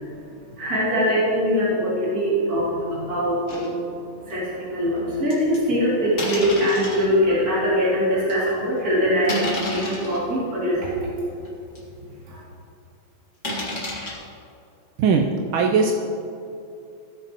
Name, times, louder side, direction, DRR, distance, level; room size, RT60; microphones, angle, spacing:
voice 1, 0.0-10.9 12.3-12.4, equal, 45° right, -9 dB, 3.2 m, -23 dB
sound 1, 3.5-3.7 4.2-4.3 5.3-5.6 6.2-7.0 7.7-7.8 8.3-8.5 9.2-10.2 10.9-11.0 11.4-11.5 11.8-11.9 13.4-14.1, left 1 dB, 35° left, 2.4 m, -29 dB
voice 2, 15.5-15.9, right 5 dB, 75° right, 2 dB, 1.4 m, -18 dB
18.0 x 7.6 x 3.0 m, 2.7 s
omnidirectional pair, 2.3 m